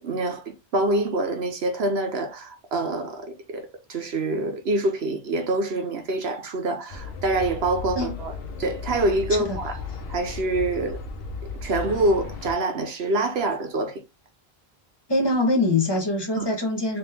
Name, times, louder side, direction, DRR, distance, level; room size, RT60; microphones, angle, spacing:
voice 1, 0.0-8.3 8.6-9.8 10.1-11.0 11.6-14.0 16.4-16.5, right 2 dB, 75° right, 1.1 m, -26 dB
sound 1, 6.9-12.5, left 4 dB, 65° left, 0.9 m, -35 dB
voice 2, 15.1-17.0, left 2 dB, 25° left, 1.2 m, -23 dB
3.3 x 3.0 x 3.4 m
omnidirectional pair, 1.1 m